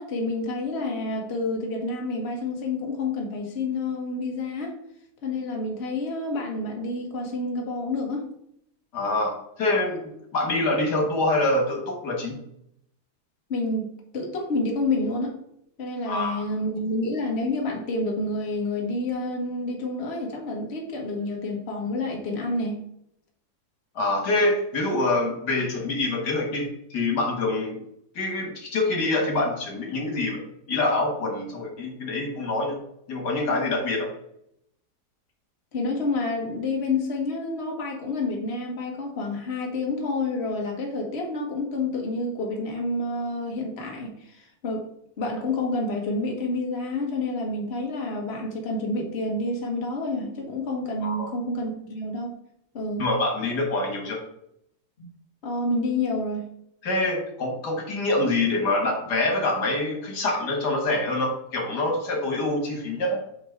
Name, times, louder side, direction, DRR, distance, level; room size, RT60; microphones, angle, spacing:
voice 1, 0.0-4.8 5.2-8.2 13.5-15.3 15.8-22.8 35.7-44.9 45.2-52.3 52.7-53.0 55.0-55.1 55.4-56.4, left 2 dB, 45° left, 0 dB, 1.4 m, -29 dB
voice 2, 8.9-12.4 16.1-16.5 24.0-27.8 28.2-32.8 33.1-34.1 51.0-51.3 53.0-54.2 56.8-63.2, left 2 dB, 85° left, 1 dB, 2.0 m, -25 dB
8.4 x 3.0 x 4.5 m, 0.74 s
omnidirectional pair, 1.7 m